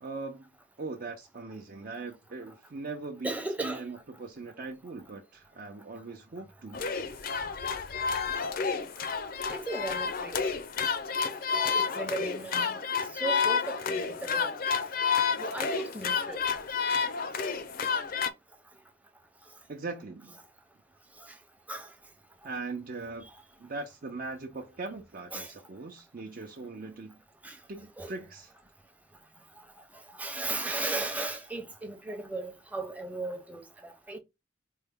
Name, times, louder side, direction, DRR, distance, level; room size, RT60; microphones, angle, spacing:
voice 1, 0.0-0.5 0.8-3.3 3.6-6.8 19.7-20.4 22.4-23.3 23.6-27.2 27.7-28.5, right 3 dB, 50° right, 0.6 m, -40 dB
voice 2, 3.2-3.8 9.5-10.4 11.5-12.8 13.1-14.6 15.4-16.4 21.7-21.9 25.3-25.5 27.4-27.6 28.0-28.1 30.2-34.2, right 2 dB, 10° right, 0.7 m, -36 dB
sound 1, 6.7-18.3, left 6 dB, 50° left, 0.5 m, -30 dB
4.4 x 2.2 x 3.5 m
head